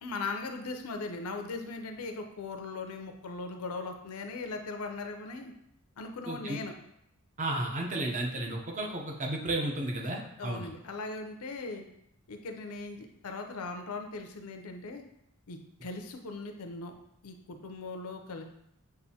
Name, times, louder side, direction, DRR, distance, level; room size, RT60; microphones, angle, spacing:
voice 1, 0.0-5.5 6.0-6.7 10.4-11.9 12.3-15.0 15.5-16.9 17.2-18.4, left 3 dB, 85° left, 5 dB, 0.5 m, -39 dB
voice 2, 6.3-6.6 7.4-10.7, right 1 dB, 35° right, 1 dB, 0.6 m, -33 dB
6.6 x 2.5 x 2.7 m, 0.78 s
head